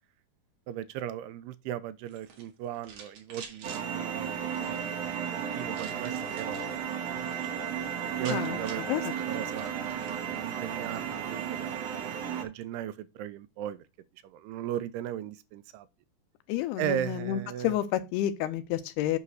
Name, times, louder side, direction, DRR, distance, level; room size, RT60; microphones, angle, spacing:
voice 1, 0.7-6.6 6.9-7.9 8.2-13.8 14.2-15.9 16.8-17.8, right 11 dB, 90° right, 2.6 m, -38 dB
sound 1, 2.1-3.8 4.4-5.0 5.7-6.7 7.1-7.5 7.7-7.8 8.0-10.2, right 5 dB, 55° right, 2.5 m, -48 dB
sound 2, 3.6-12.4, right 7 dB, 75° right, 1.5 m, -34 dB
voice 2, 16.5-19.2, left 12 dB, 85° left, 2.8 m, -30 dB
8.2 x 3.2 x 6.1 m
omnidirectional pair, 4.6 m